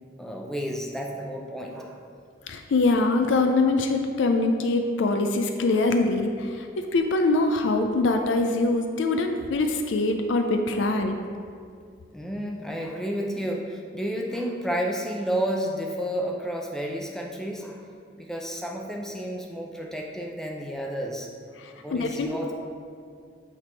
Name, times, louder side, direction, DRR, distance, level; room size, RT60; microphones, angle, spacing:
voice 1, 0.2-2.0 5.7-5.8 10.7-10.8 12.1-21.3 21.8-22.5, equal, 5° left, 0 dB, 0.5 m, -31 dB
voice 2, 2.5-6.7 6.9-11.2 21.6-22.3, left 2 dB, 80° left, 5 dB, 0.4 m, -23 dB
8.5 x 3.4 x 4.4 m, 2.2 s
head